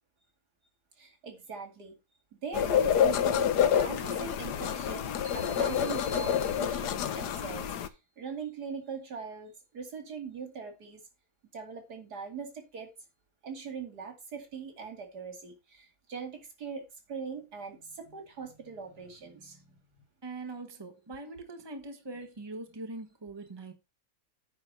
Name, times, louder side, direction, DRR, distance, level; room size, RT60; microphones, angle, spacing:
voice 1, 1.0-2.0 2.3-7.7 8.2-11.0 11.5-12.9 13.4-19.6, right 5 dB, 75° right, 2.9 m, -41 dB
sound 1, 2.5-7.9, left 9 dB, 85° left, 1.4 m, -28 dB
sound 2, 5.2-7.2, left 1 dB, 35° right, 2.6 m, -49 dB
voice 2, 20.2-23.7, right 2 dB, 15° right, 1.4 m, -42 dB
9.5 x 4.3 x 6.6 m
omnidirectional pair, 1.7 m